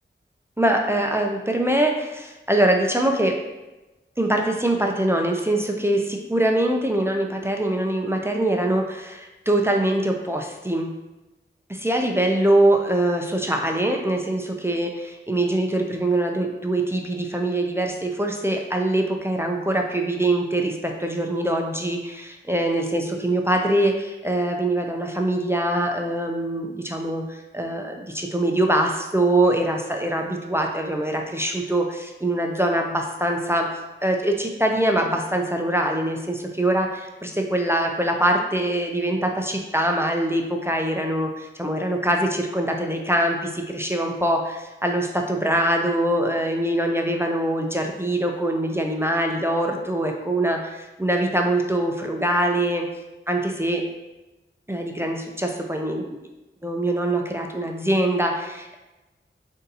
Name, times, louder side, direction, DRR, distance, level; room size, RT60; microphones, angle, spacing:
voice 1, 0.6-3.4 4.2-10.9 11.7-33.7 34.0-52.9 53.3-53.8 54.7-56.2 56.6-58.8, right 1 dB, 10° right, 2 dB, 0.5 m, -23 dB
3.9 x 2.7 x 4.0 m, 1.0 s
wide cardioid pair, 45°, 21 cm